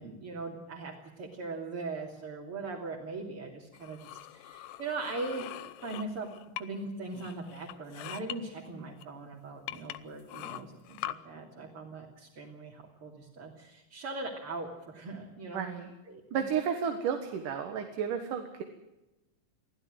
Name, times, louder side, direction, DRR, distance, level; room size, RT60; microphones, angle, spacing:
voice 1, 0.0-5.5 5.8-6.3 6.6-15.7 16.1-16.4, right 3 dB, 45° right, -2 dB, 3.6 m, -40 dB
sound 1, 3.7-6.9 7.2-8.4 9.0-9.1 9.7-11.1, left 14 dB, 90° left, 2.5 m, -42 dB
voice 2, 15.5-15.9 16.3-18.6, right 7 dB, 75° right, 6 dB, 3.1 m, -32 dB
24.5 x 16.0 x 7.8 m, 1.0 s
omnidirectional pair, 3.7 m